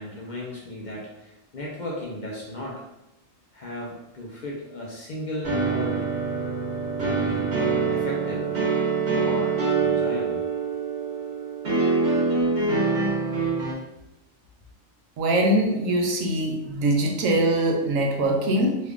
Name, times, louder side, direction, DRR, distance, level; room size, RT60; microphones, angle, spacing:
voice 1, 0.0-2.8 3.5-6.1 7.0-7.5 7.9-8.6 9.1-10.4, left 1 dB, 60° left, -3 dB, 0.4 m, -35 dB
sound 1, 5.4-13.7, right 4 dB, 55° right, 1.2 m, -25 dB
voice 2, 15.2-18.8, right 1 dB, 75° right, 1 dB, 1.0 m, -22 dB
3.1 x 2.4 x 3.4 m, 0.92 s
omnidirectional pair, 1.4 m